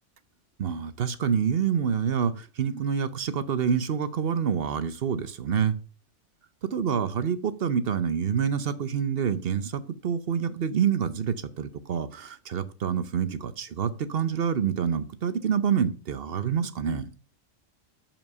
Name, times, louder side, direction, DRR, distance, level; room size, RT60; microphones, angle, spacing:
voice 1, 0.6-5.7 6.6-17.1, right 7 dB, 55° right, 13 dB, 0.9 m, -27 dB
7.2 x 5.6 x 6.6 m, 0.36 s
omnidirectional pair, 1.3 m